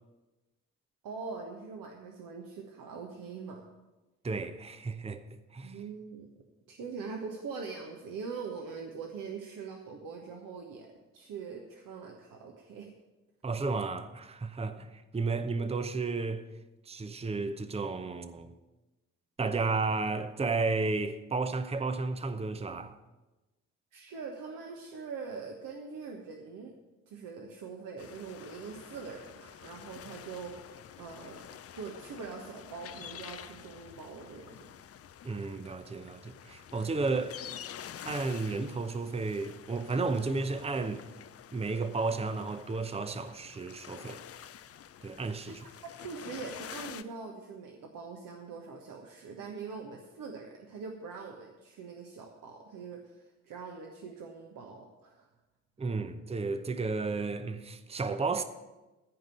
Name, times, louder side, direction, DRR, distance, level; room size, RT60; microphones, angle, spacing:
voice 1, 1.0-3.7 5.6-6.3 6.7-10.9 11.1-12.9 14.6-14.8 23.9-26.7 27.1-34.7 45.5-55.3, right 5 dB, 55° right, 1.3 m, -43 dB
voice 2, 4.2-5.2 5.5-5.8 13.4-16.4 16.9-18.5 19.4-22.9 35.2-37.3 38.0-41.0 41.5-44.2 45.0-45.6 55.8-58.4, right 3 dB, 15° right, 0.8 m, -33 dB
sound 1, 28.0-47.0, left 9 dB, 40° left, 0.6 m, -48 dB
15.0 x 5.3 x 7.7 m
figure-of-eight pair, 40°, 39 cm